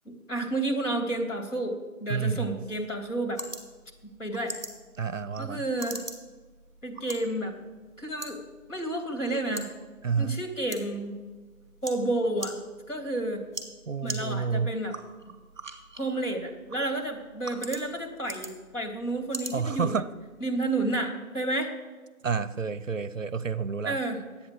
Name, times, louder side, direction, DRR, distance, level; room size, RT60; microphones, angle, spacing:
voice 1, 0.0-3.4 4.2-4.6 5.4-6.0 6.8-7.5 8.0-8.4 8.7-9.7 10.2-11.1 11.8-12.6 12.9-13.4 14.0-15.0 16.0-19.9 20.4-21.7 23.8-24.2, right 2 dB, 60° left, 5 dB, 3.0 m, -30 dB
voice 2, 2.1-2.6 5.0-5.7 10.0-10.4 13.9-14.7 19.5-20.1 22.2-24.0, right 5 dB, 60° right, 17 dB, 0.6 m, -29 dB
sound 1, 2.5-20.5, right 2 dB, 30° right, 1.6 m, -44 dB
10.5 x 8.6 x 7.8 m, 1.3 s
figure-of-eight pair, 180°, 43 cm